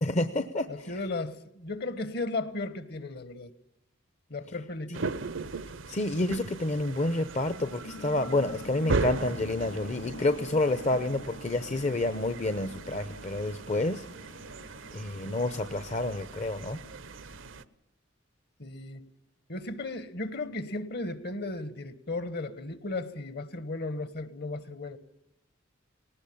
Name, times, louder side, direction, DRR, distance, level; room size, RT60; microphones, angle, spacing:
voice 1, 0.0-1.0 5.9-14.0 14.9-16.8, left 2 dB, 35° left, 0.8 m, -29 dB
voice 2, 0.7-3.5 4.3-5.2 18.6-19.0 19.5-25.0, left 2 dB, 55° left, 1.5 m, -35 dB
sound 1, 4.9-17.6, right 3 dB, 75° right, 0.8 m, -38 dB
sound 2, 7.4-17.6, left 1 dB, 75° left, 5.4 m, -46 dB
19.0 x 19.0 x 8.6 m
head